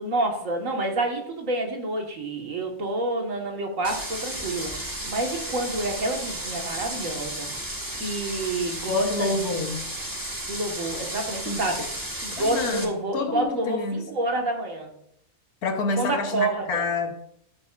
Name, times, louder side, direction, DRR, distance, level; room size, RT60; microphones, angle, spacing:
voice 1, 0.0-7.5 7.9-9.3 10.5-11.8 12.2-14.9 16.0-16.9, right 2 dB, 60° right, 2 dB, 2.0 m, -28 dB
sound 1, 3.8-12.9, right 1 dB, 15° right, 1.4 m, -33 dB
voice 2, 8.9-9.9 11.5-11.7 12.4-14.1 15.6-17.1, left 3 dB, 80° left, 6 dB, 1.6 m, -28 dB
12.0 x 8.0 x 2.5 m, 0.73 s
omnidirectional pair, 1.6 m